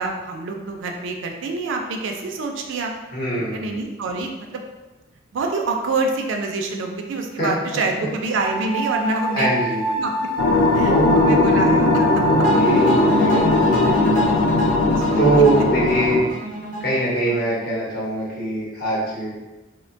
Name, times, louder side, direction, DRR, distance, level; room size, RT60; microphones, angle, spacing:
voice 1, 0.0-2.9 3.3-4.6 5.3-9.5 9.9-10.3 10.7-12.2 15.0-15.4, right 3 dB, 65° right, 3 dB, 0.3 m, -26 dB
voice 2, 3.1-3.8 7.4-7.5 9.3-9.8 10.8-11.7 12.3-14.1 15.2-16.2 16.8-19.3, right 2 dB, 50° left, -7 dB, 0.9 m, -22 dB
sound 1, 8.3-13.9, right 2 dB, ahead, 0.5 m, -27 dB
sound 2, 10.4-16.2, left 2 dB, 75° left, 0.3 m, -18 dB
sound 3, 12.4-17.5, equal, 20° left, 1.0 m, -25 dB
2.9 x 2.1 x 2.5 m, 1.1 s
head